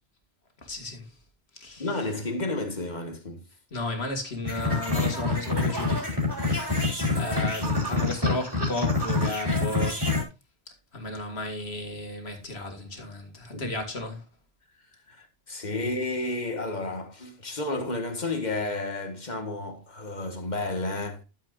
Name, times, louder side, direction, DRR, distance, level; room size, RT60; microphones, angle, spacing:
voice 1, 0.6-1.1 1.5-1.9 3.7-10.1 10.9-14.2, left 2 dB, 90° left, 2.3 m, -34 dB
voice 2, 1.8-3.4 13.5-13.7 15.1-21.2, left 2 dB, 45° left, 1.7 m, -31 dB
sound 1, 4.4-10.2, left 3 dB, 20° right, 3.7 m, -26 dB
12.5 x 7.3 x 2.4 m
omnidirectional pair, 1.0 m